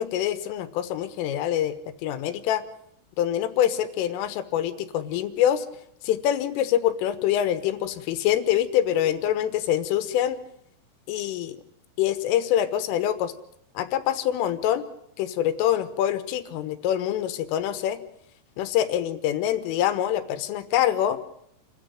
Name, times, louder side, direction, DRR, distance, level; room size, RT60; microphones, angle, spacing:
voice 1, 0.0-1.8 2.0-2.6 3.2-5.7 6.0-10.4 11.1-11.6 12.0-13.3 13.8-14.9 15.2-18.0 18.6-21.2, left 11 dB, 90° left, 13 dB, 3.9 m, -25 dB
28.0 x 13.5 x 9.1 m, 0.74 s
omnidirectional pair, 5.6 m